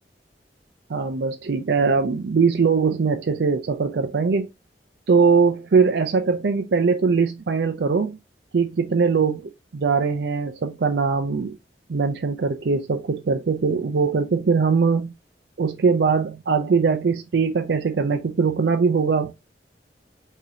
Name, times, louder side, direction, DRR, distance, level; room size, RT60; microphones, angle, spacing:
voice 1, 0.9-4.5 5.1-8.2 8.5-9.4 9.7-11.6 11.9-15.1 15.6-19.4, right 5 dB, 65° right, 0.5 m, -21 dB
4.8 x 2.8 x 2.7 m
head